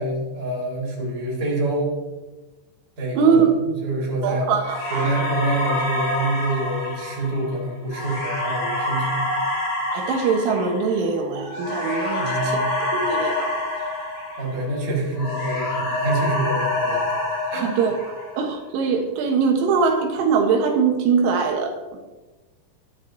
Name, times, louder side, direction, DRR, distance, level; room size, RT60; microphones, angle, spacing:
voice 1, 0.0-1.9 3.0-4.5 4.9-9.2 12.2-12.7 14.4-17.0 17.5-17.7, right 2 dB, 25° right, -4 dB, 4.2 m, -26 dB
voice 2, 3.2-3.6 4.2-5.1 9.9-13.5 17.5-18.0 18.4-21.8, right 5 dB, 85° right, 3 dB, 3.9 m, -22 dB
sound 1, 4.6-14.8 15.1-18.6, left 2 dB, 30° left, 3.7 m, -27 dB
13.5 x 12.5 x 4.0 m, 1.2 s
omnidirectional pair, 5.6 m